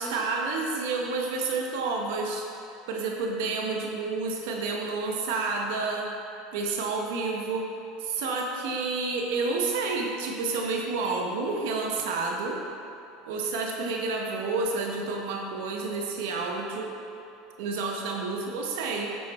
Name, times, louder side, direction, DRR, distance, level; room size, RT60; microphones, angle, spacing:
voice 1, 0.0-2.5 2.9-6.1 6.5-7.7 8.0-12.6 13.2-17.0 17.6-19.1, right 3 dB, 75° right, 0 dB, 1.2 m, -29 dB
9.2 x 6.1 x 4.4 m, 2.7 s
supercardioid pair, 120°, 0 cm